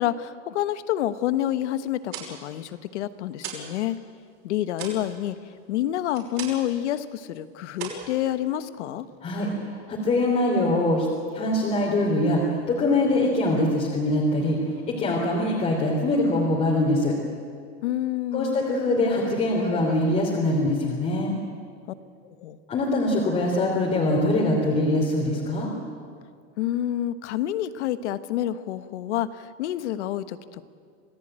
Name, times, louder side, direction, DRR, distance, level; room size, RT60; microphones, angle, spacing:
voice 1, 0.0-4.0 4.4-5.3 5.7-9.1 17.8-18.6 22.4-22.6 26.6-30.6, left 12 dB, 85° left, 12 dB, 1.4 m, -28 dB
sound 1, 1.9-3.8 4.1-6.8 7.1-7.4 7.7-8.8, right 7 dB, 40° right, 5.7 m, -39 dB
voice 2, 9.2-11.1 11.3-12.4 12.7-14.6 15.0-17.1 18.3-21.3 22.7-25.7, left 1 dB, 20° left, -3 dB, 3.3 m, -23 dB
27.5 x 18.5 x 9.0 m, 2.2 s
supercardioid pair, 180°, 34 cm